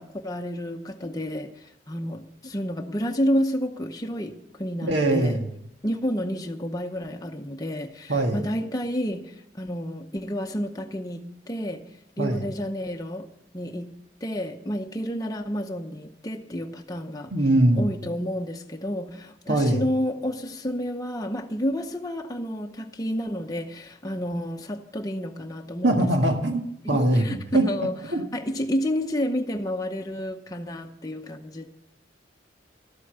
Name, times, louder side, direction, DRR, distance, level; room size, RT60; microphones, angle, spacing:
voice 1, 0.0-5.4 5.8-13.3 13.5-17.3 17.8-26.1 26.8-31.6, equal, 20° left, 0.8 m, -30 dB
voice 2, 4.8-5.5 8.1-8.4 12.2-12.5 17.3-17.9 19.5-19.8 25.8-27.6 28.1-28.2, right 1 dB, 75° right, 1.8 m, -22 dB
12.5 x 8.3 x 6.8 m
head